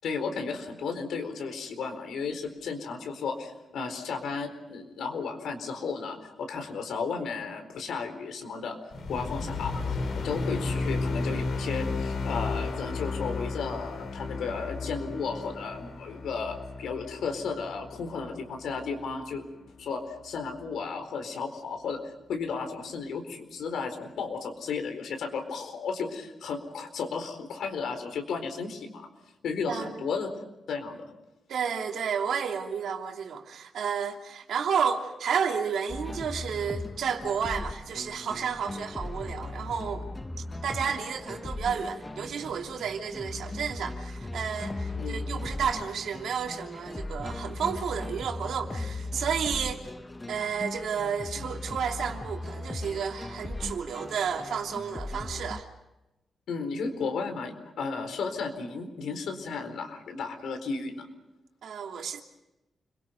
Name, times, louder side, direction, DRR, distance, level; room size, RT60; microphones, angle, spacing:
voice 1, 0.0-8.8 9.1-10.0 10.2-19.5 19.8-29.1 29.4-30.3 30.7-31.1 45.0-45.2 56.5-61.1, left 5 dB, 85° left, 4.3 m, -34 dB
sound 1, 8.9-19.4, left 3 dB, 60° left, 3.3 m, -33 dB
voice 2, 29.7-30.0 31.5-40.1 40.6-49.8 50.3-55.7 61.6-62.2, right 7 dB, 75° right, 2.9 m, -31 dB
sound 2, 35.9-55.6, left 2 dB, 15° left, 0.7 m, -38 dB
29.5 x 23.5 x 5.4 m
wide cardioid pair, 160°, 0 cm